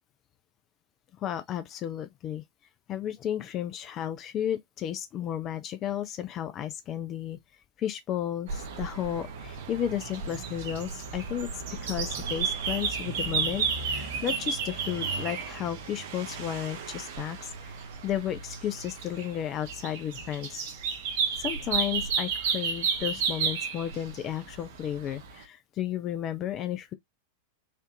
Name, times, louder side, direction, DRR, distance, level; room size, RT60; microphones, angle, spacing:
voice 1, 1.2-2.4 2.9-7.4 7.8-11.5 11.8-17.8 18.0-20.7 21.4-26.9, left 10 dB, 30° left, 0.5 m, -33 dB
sound 1, 8.5-25.4, right 5 dB, 55° right, 0.8 m, -33 dB
4.3 x 2.6 x 2.6 m
figure-of-eight pair, 90°, 0 cm